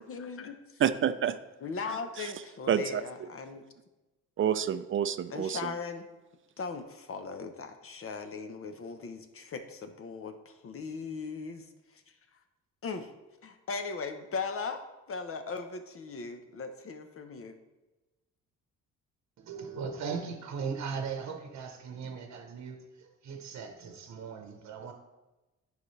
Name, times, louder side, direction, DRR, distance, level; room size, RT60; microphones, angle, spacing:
voice 1, 0.0-0.8 1.6-3.6 5.3-6.1 6.6-12.4 12.8-13.1 13.4-14.8 15.1-17.6, left 4 dB, 45° left, 7 dB, 1.0 m, -39 dB
voice 2, 0.8-1.4 2.2-2.3 2.7-3.0 4.4-5.7, right 9 dB, 45° right, 12 dB, 0.5 m, -28 dB
voice 3, 19.4-24.9, right 5 dB, 65° right, 4 dB, 0.9 m, -38 dB
10.5 x 4.9 x 3.2 m, 1.1 s
cardioid pair, 90°, 30 cm